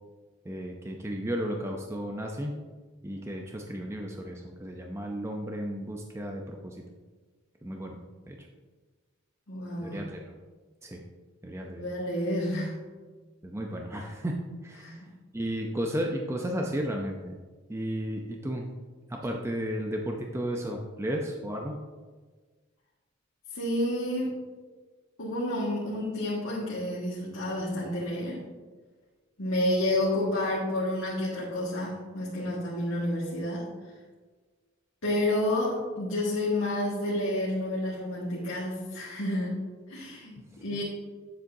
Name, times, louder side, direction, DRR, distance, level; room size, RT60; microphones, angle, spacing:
voice 1, 0.5-2.5 3.0-6.8 7.6-8.0 8.3-8.4 9.8-10.4 10.8-11.0 11.4-11.9 13.4-14.3 14.6-15.0 15.3-17.4 17.7-18.7 19.1-21.7, equal, 15° right, 1 dB, 0.5 m, -33 dB
voice 2, 9.5-10.1 11.8-12.8 14.8-14.9 23.5-24.4 25.2-28.4 29.4-33.7 35.0-40.8, left 1 dB, 85° left, -7 dB, 1.7 m, -30 dB
9.5 x 7.5 x 2.7 m, 1.4 s
head